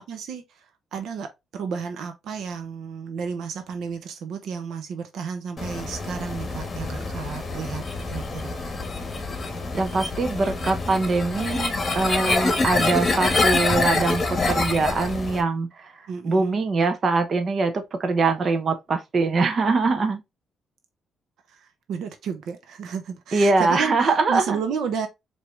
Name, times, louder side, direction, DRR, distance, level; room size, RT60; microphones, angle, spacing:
voice 1, 0.1-8.6 16.1-16.6 21.5-25.1, right 6 dB, 75° right, 0.8 m, -32 dB
sound 1, 5.6-15.4, left 3 dB, 30° left, 1.2 m, -26 dB
voice 2, 9.7-20.2 23.3-24.6, right 3 dB, 45° right, 0.9 m, -23 dB
4.7 x 2.8 x 3.2 m
cardioid pair, 90°, 0 cm